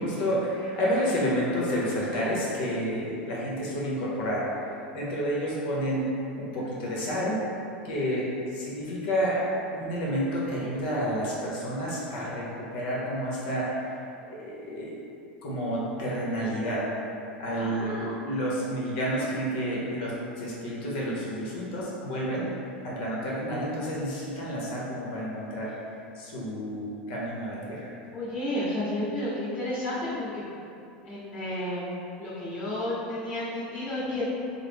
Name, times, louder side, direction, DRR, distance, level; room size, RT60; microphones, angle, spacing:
voice 1, 0.0-4.4 4.9-6.1 6.4-7.4 7.8-9.5 9.7-13.8 14.4-14.9 15.4-16.8 17.4-22.5 22.8-25.7 26.1-27.9, equal, 65° left, -5 dB, 0.9 m, -30 dB
voice 2, 17.5-18.1 28.1-30.4 31.0-31.9 32.2-34.2, left 1 dB, 30° left, -12 dB, 1.3 m, -32 dB
3.7 x 2.0 x 3.4 m, 2.7 s
supercardioid pair, 115°, 5 cm